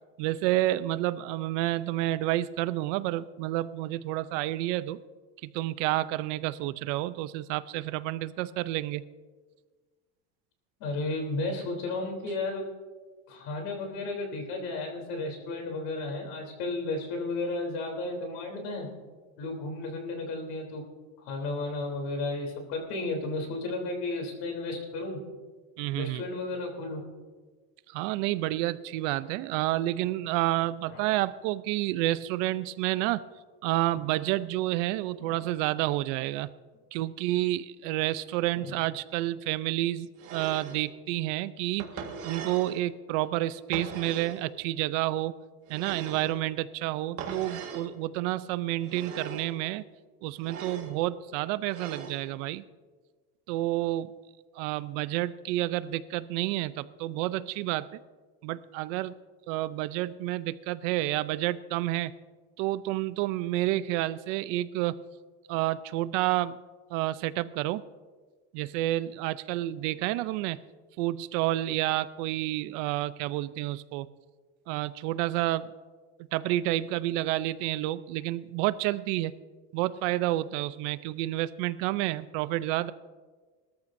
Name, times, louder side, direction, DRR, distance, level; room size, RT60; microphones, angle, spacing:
voice 1, 0.2-5.0 5.4-9.0 25.8-26.2 27.9-33.3 33.6-36.5 36.9-45.3 45.7-49.8 50.2-52.6 53.5-54.1 54.6-57.9 58.4-59.1 59.5-62.1 62.6-65.0 65.5-66.6 66.9-67.8 68.5-70.6 71.0-74.1 74.7-75.7 76.2-79.3 79.7-82.9, right 15 dB, 65° right, 16 dB, 0.6 m, -29 dB
voice 2, 10.8-12.6 13.3-18.9 19.4-20.8 21.2-25.2 25.9-27.0 30.9-31.0 35.2-35.4 38.6-38.7, left 2 dB, 60° left, 2 dB, 3.4 m, -33 dB
sound 1, 40.2-40.8 41.8-42.8 43.7-44.4 45.7-46.4 47.2-47.9 48.8-49.5 50.4-50.9 51.7-52.2, right 6 dB, 35° right, 1.7 m, -39 dB
21.0 x 14.0 x 2.6 m, 1.4 s
cardioid pair, 175°, 39 cm